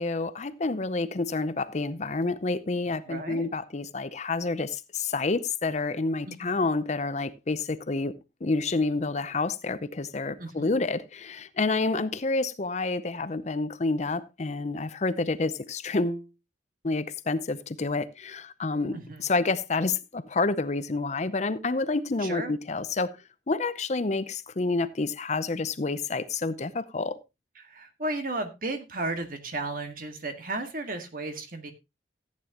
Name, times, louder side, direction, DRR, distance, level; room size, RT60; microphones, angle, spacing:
voice 1, 0.0-8.1 8.4-16.3 16.8-23.2 23.5-27.2, left 3 dB, 40° left, 0.6 m, -29 dB
voice 2, 3.1-3.5 6.3-6.7 10.4-10.7 18.9-19.2 22.2-22.5 27.6-31.7, right 2 dB, 50° right, 1.8 m, -34 dB
14.5 x 9.3 x 2.9 m
head